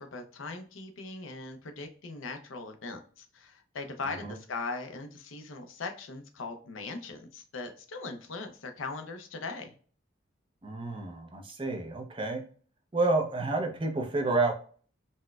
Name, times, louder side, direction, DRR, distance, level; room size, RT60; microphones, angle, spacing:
voice 1, 0.0-9.8, left 3 dB, 75° left, 5 dB, 0.6 m, -40 dB
voice 2, 10.6-12.4 12.9-14.5, right 3 dB, 25° right, 2 dB, 0.5 m, -29 dB
4.1 x 2.1 x 2.2 m, 0.43 s
head